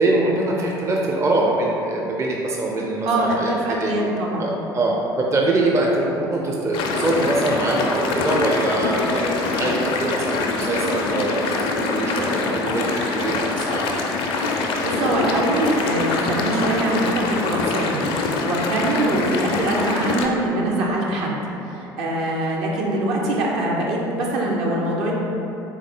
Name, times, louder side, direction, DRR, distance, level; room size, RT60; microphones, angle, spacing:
voice 1, 0.0-3.5 3.8-4.0 4.4-13.9, right 2 dB, 25° right, -2 dB, 0.5 m, -23 dB
voice 2, 3.0-4.5 14.8-21.3 21.6-25.1, right 1 dB, 55° right, -2 dB, 0.7 m, -23 dB
sound 1, 6.7-20.3, left 3 dB, 50° left, 0.4 m, -24 dB
3.7 x 3.2 x 3.6 m, 2.9 s
figure-of-eight pair, 60°, 12 cm